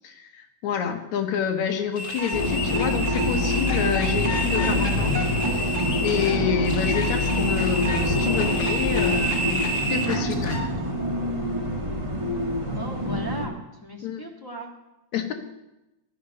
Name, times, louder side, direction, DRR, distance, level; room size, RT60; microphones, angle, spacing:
voice 1, 0.0-5.2 5.5-10.6 14.0-14.2 15.1-15.3, left 8 dB, 75° left, 4 dB, 2.5 m, -28 dB
sound 1, 1.9-10.6, equal, 30° left, 1.9 m, -29 dB
sound 2, 2.3-13.5, left 1 dB, 55° right, 0.3 m, -25 dB
voice 2, 12.7-13.5 13.8-14.7, right 1 dB, 10° left, -1 dB, 1.0 m, -37 dB
14.5 x 11.0 x 5.4 m, 0.95 s
omnidirectional pair, 3.4 m